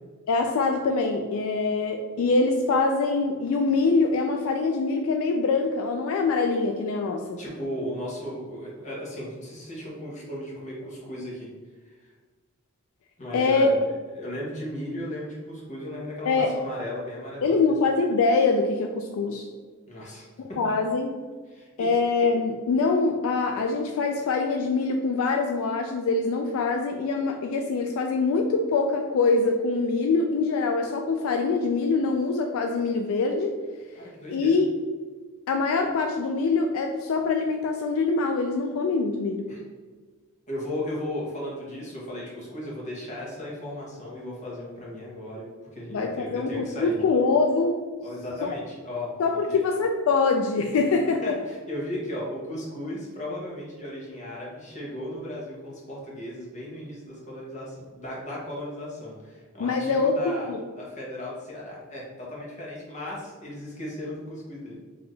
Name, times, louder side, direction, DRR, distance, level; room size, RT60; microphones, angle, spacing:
voice 1, 0.3-7.4 13.3-13.7 16.3-16.5 17.4-19.5 20.6-21.1 21.8-33.6 34.3-34.7 35.5-39.5 45.9-47.8 48.4-48.5 49.2-51.4 59.6-60.6, left 4 dB, 70° left, 4 dB, 0.3 m, -24 dB
voice 2, 7.4-11.5 11.9-12.1 13.2-17.7 19.9-20.3 21.5-22.0 33.9-34.6 39.5-39.6 40.5-47.0 48.0-49.6 51.2-64.8, left 1 dB, 35° left, -5 dB, 1.2 m, -36 dB
4.0 x 2.9 x 3.2 m, 1.4 s
head